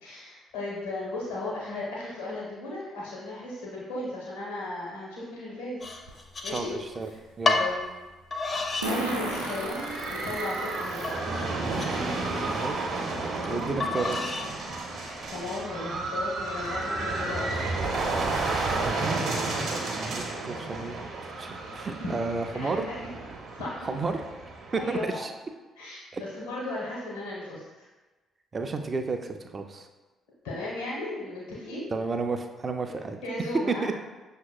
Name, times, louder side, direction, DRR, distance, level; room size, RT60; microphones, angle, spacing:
voice 1, 0.0-5.8 6.4-6.8 7.1-7.2 7.5-7.9 8.9-11.2 13.5-13.7 15.3-17.6 22.0-23.1 23.5-23.9 24.7-25.3 25.8-27.6 30.4-31.9 32.8-33.9, left 2 dB, 70° left, -5 dB, 0.8 m, -36 dB
sound 1, 5.8-7.0 7.5-7.7 8.3-8.9 9.3-9.8 10.3-10.4 11.0-12.6 13.8-14.5 15.1-15.5, left 3 dB, 35° left, 0.5 m, -30 dB
Fart, 6.1-6.2 8.8-11.1 11.7-11.8 13.1-13.2 13.6-13.7 14.1-14.4, right 1 dB, 90° right, 0.5 m, -33 dB
voice 2, 6.5-7.1 7.4-7.6 12.5-12.7 13.4-14.2 19.9-22.9 23.8-24.2 24.7-25.3 26.1-26.2 28.5-29.9 31.9-33.2 33.8-33.9, right 4 dB, 35° right, 6 dB, 0.3 m, -32 dB
sound 2, 8.5-25.1, right 3 dB, 55° right, 0.8 m, -32 dB
5.7 x 2.8 x 2.2 m, 1.2 s
figure-of-eight pair, 45°, 0 cm